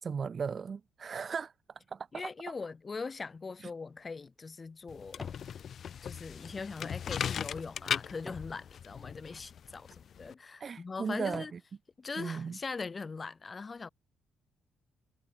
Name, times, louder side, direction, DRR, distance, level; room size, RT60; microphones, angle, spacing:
voice 1, 0.0-1.5 1.9-2.3 3.6-3.7 10.6-11.6 12.2-12.6, right 6 dB, 45° right, 1.9 m, -36 dB
voice 2, 2.1-5.4 6.0-11.5 12.0-13.9, left 4 dB, 30° left, 1.2 m, -41 dB
sound 1, 3.7-5.5 6.0-8.6 9.2-9.4 10.1-10.3 10.8-11.7 12.1-12.2, left 2 dB, 15° left, 3.7 m, -53 dB
sound 2, 4.9-10.3, left 8 dB, 55° left, 0.5 m, -38 dB
cardioid pair, 90°, 0 cm